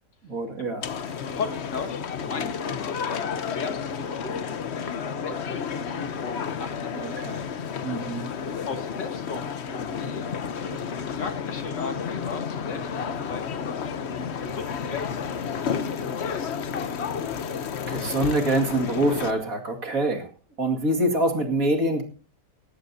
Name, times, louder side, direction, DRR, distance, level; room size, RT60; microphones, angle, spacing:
voice 1, 0.2-0.9 6.9-7.4 7.8-8.3 17.9-20.3 20.6-22.0, right 1 dB, 50° right, 3 dB, 2.7 m, -25 dB
sound 1, 0.8-19.3, left 6 dB, 50° left, 1.0 m, -31 dB
voice 2, 1.3-7.2 8.7-10.3 10.6-13.7 14.4-15.4 15.7-16.7, left 4 dB, 85° left, 5 dB, 2.9 m, -37 dB
18.5 x 16.5 x 2.8 m, 0.37 s
omnidirectional pair, 1.8 m